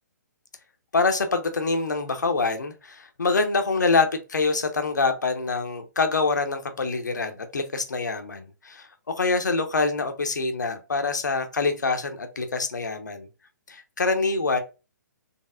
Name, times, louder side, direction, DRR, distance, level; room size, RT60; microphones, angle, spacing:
voice 1, 0.9-13.3 13.7-14.6, left 4 dB, 70° left, 0.9 m, -25 dB
4.2 x 3.5 x 2.4 m
figure-of-eight pair, 125°, 10 cm